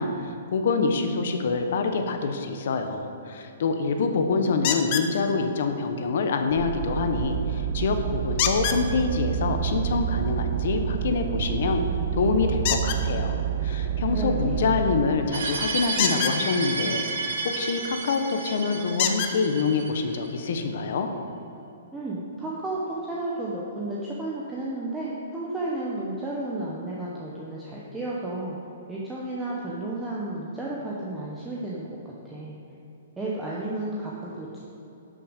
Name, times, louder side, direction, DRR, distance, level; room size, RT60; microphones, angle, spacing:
voice 1, 0.0-11.8 12.1-21.1, left 4 dB, 55° left, 6 dB, 0.8 m, -26 dB
sound 1, 4.6-5.1 8.4-8.8 12.6-13.0 15.9-16.4 18.0-18.1 19.0-19.3 20.3-20.4 20.9-21.0, left 9 dB, 30° left, 0.6 m, -25 dB
sound 2, 6.5-15.0, right 9 dB, 45° right, 0.4 m, -28 dB
voice 2, 14.1-14.5 21.9-28.6 28.9-32.6 33.2-34.6, right 2 dB, 5° right, -6 dB, 0.8 m, -32 dB
sound 3, 15.3-20.3, right 4 dB, 70° right, 1.6 m, -31 dB
11.5 x 6.2 x 5.0 m, 3.0 s
hypercardioid pair, 175°, 0 cm